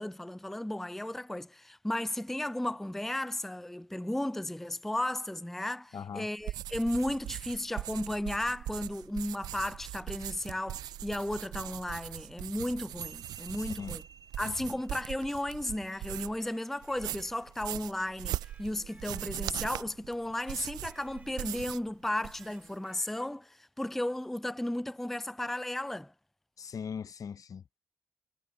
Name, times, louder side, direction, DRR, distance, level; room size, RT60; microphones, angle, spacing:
voice 1, 0.0-14.0 14.4-26.1, left 1 dB, 5° left, 0.3 m, -34 dB
voice 2, 5.9-6.3 13.6-14.0 14.5-14.7 26.6-27.8, left 7 dB, 60° left, 0.6 m, -41 dB
sound 1, 6.4-16.5 16.8-21.9 22.2-22.7, right 13 dB, 85° right, 0.3 m, -40 dB
sound 2, 13.0-19.6, right 5 dB, 55° right, 1.3 m, -54 dB
Electric guitar, 16.4-17.7 18.4-19.8 20.4-21.6 22.4-23.6, right 2 dB, 25° right, 2.2 m, -61 dB
supercardioid pair, 45°, 7 cm